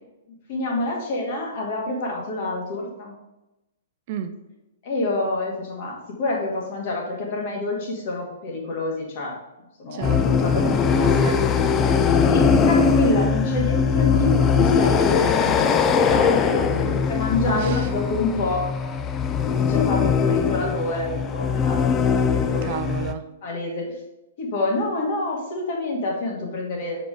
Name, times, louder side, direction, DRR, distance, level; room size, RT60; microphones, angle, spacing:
voice 1, 0.5-3.1 4.8-9.4 9.8-10.7 12.1-18.7 19.4-22.8 23.4-23.8 24.4-27.0, left 2 dB, 45° left, -1 dB, 2.0 m, -27 dB
voice 2, 9.9-10.7 11.0-11.8 16.7-17.0 17.5-17.9 22.6-23.2, right 8 dB, 45° right, 9 dB, 0.5 m, -32 dB
sound 1, 10.0-23.1, left 6 dB, 20° left, 0.4 m, -20 dB
6.7 x 4.9 x 3.8 m, 0.95 s
figure-of-eight pair, 110°, 0 cm